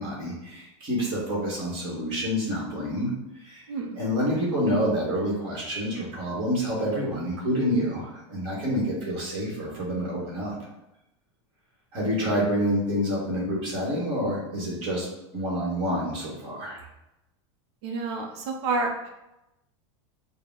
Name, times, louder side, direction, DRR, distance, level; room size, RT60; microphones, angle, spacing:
voice 1, 0.0-3.6 4.0-10.5 11.9-15.1 15.3-16.8, equal, 30° right, -4 dB, 1.4 m, -28 dB
voice 2, 3.7-4.0 17.8-19.1, right 3 dB, 60° right, 0 dB, 0.7 m, -29 dB
4.7 x 2.2 x 3.7 m, 0.92 s
supercardioid pair, 170°, 16 cm